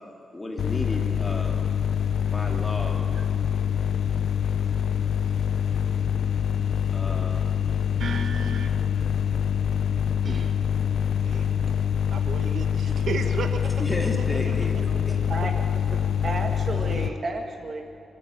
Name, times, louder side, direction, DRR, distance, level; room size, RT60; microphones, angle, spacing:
voice 1, 0.3-1.6 2.3-3.0 6.9-7.4 13.8-15.2, left 1 dB, 15° left, 1 dB, 2.5 m, -33 dB
sound 1, 0.6-17.1, left 8 dB, 70° left, 0.7 m, -25 dB
voice 2, 8.0-8.7 11.2-11.6 12.1-13.7 14.2-14.3 15.1-15.2 15.9-16.0, right 5 dB, 70° right, 7 dB, 1.2 m, -33 dB
voice 3, 10.2-10.5 15.3-15.6 16.2-17.8, right 2 dB, 35° right, 3 dB, 2.2 m, -32 dB
24.5 x 13.0 x 9.0 m, 2.5 s
wide cardioid pair, 160°, 0 cm